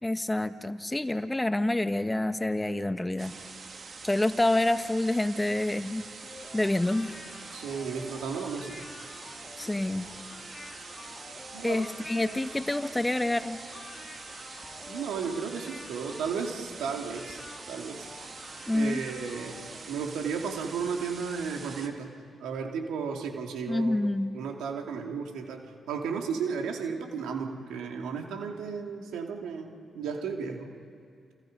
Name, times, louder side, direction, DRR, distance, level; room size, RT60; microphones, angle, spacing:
voice 1, 0.0-3.3 4.0-6.0 6.5-7.1 9.6-10.0 11.6-13.6 18.7-19.0 23.7-24.4, left 1 dB, 15° left, 9 dB, 1.7 m, -27 dB
sound 1, 3.2-21.9, right 4 dB, 55° right, 2.8 m, -45 dB
sound 2, 6.2-19.9, left 3 dB, 35° left, 2.7 m, -48 dB
voice 2, 7.5-8.9 11.5-12.5 14.9-17.4 17.7-18.1 18.7-19.6 19.9-22.1 22.4-24.1 24.3-30.7, right 6 dB, 80° right, 2 dB, 2.5 m, -34 dB
29.0 x 28.0 x 5.3 m, 2.3 s
hypercardioid pair, 45°, 0 cm